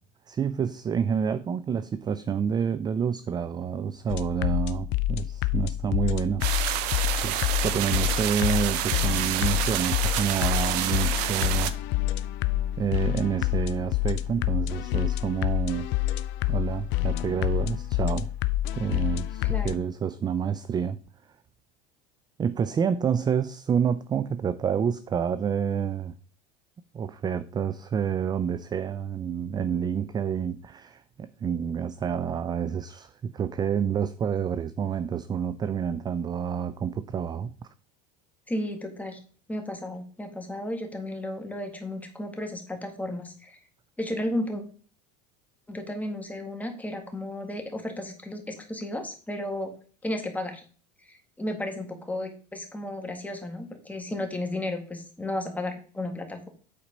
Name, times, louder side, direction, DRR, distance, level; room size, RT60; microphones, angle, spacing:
voice 1, 0.3-6.9 7.2-11.8 12.8-15.9 16.5-18.3 18.7-21.0 22.4-26.1 26.9-37.5, right 7 dB, 20° right, 0.3 m, -28 dB
sound 1, 4.1-19.8, left 14 dB, 60° left, 0.6 m, -28 dB
sound 2, 6.4-11.7, right 13 dB, 75° right, 0.8 m, -28 dB
voice 2, 19.5-19.8 38.5-39.2 39.5-43.6 44.0-44.6 45.7-49.7 50.0-50.6 51.1-56.5, left 1 dB, 5° left, 1.8 m, -33 dB
8.4 x 4.2 x 5.2 m
supercardioid pair, 110°, 21 cm